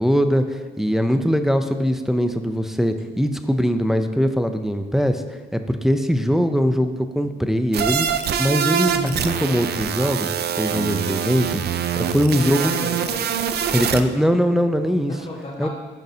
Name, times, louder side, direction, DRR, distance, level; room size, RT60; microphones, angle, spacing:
voice 1, 0.0-5.2 5.5-8.1 8.4-11.6 12.0-12.7 13.7-15.1 15.6-15.7, equal, ahead, 7 dB, 0.4 m, -21 dB
sound 1, 7.7-14.0, right 8 dB, 60° right, 0.4 m, -24 dB
voice 2, 8.8-9.2 12.4-13.3 15.2-15.7, left 1 dB, 30° left, -2 dB, 1.3 m, -32 dB
9.1 x 5.3 x 2.7 m, 1.4 s
cardioid pair, 95°, 19 cm